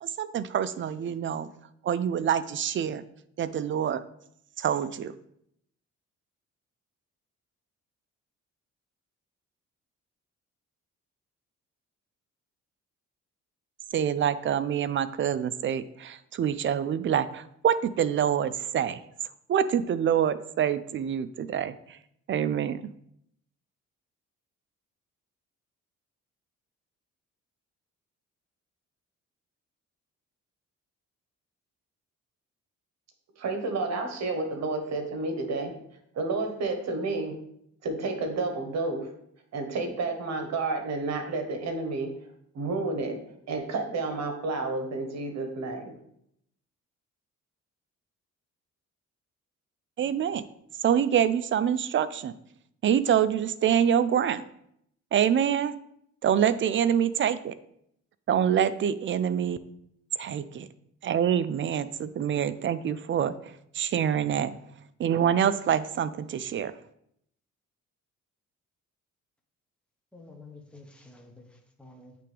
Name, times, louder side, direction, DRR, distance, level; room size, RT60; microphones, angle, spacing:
voice 1, 0.0-1.5 1.8-3.0 3.4-4.0 4.6-5.1 13.9-19.0 19.5-22.0 22.3-22.8 50.0-50.4 50.8-52.3 52.8-54.4 55.1-55.7 56.2-57.5 58.3-59.6 60.2-60.7 61.0-64.5 65.0-66.7, right 9 dB, 40° right, 0.4 m, -26 dB
voice 2, 33.4-35.7 36.1-37.4 37.8-39.1 39.5-42.1 42.5-43.2 43.5-45.9, right 3 dB, 60° right, 1.2 m, -30 dB
voice 3, 70.1-72.2, left 2 dB, 5° left, 1.1 m, -50 dB
8.4 x 3.4 x 3.3 m
cardioid pair, 90°, 30 cm